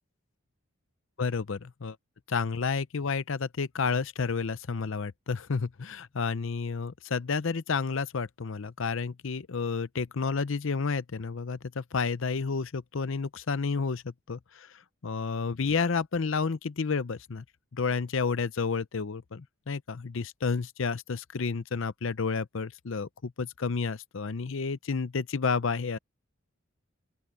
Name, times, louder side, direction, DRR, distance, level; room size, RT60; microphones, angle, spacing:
voice 1, 1.2-2.0 2.3-14.7 15.0-17.4 17.7-26.0, left 5 dB, 65° left, 0.6 m, -31 dB
open air
head